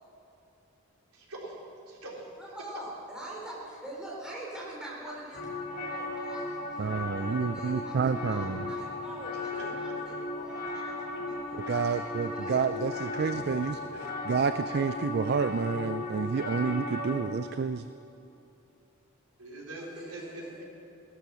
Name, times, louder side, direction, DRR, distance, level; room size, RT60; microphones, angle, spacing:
voice 1, 1.1-1.6 1.9-2.2 9.3-9.9 11.2-11.3 13.9-14.0 19.4-20.7, right 1 dB, 90° right, -3 dB, 3.6 m, -43 dB
voice 2, 2.4-13.0 19.8-20.7, right 1 dB, 5° right, -5 dB, 3.5 m, -45 dB
sound 1, 5.3-17.2, left 2 dB, 40° left, 1.8 m, -36 dB
voice 3, 6.8-8.7 11.7-13.8 14.3-17.9, right 5 dB, 45° right, 12 dB, 0.3 m, -29 dB
17.5 x 13.0 x 6.1 m, 2.9 s
head